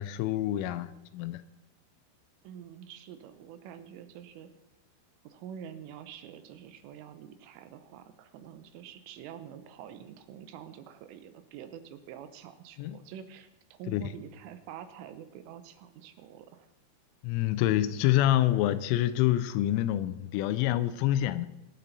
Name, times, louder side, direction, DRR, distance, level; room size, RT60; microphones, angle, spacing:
voice 1, 0.0-1.4 12.8-13.0 13.9-14.1 17.2-21.5, left 13 dB, 85° left, 3.1 m, -27 dB
voice 2, 2.4-4.5 5.2-16.7, right 9 dB, 80° right, 3.3 m, -47 dB
22.5 x 8.8 x 4.0 m
omnidirectional pair, 5.8 m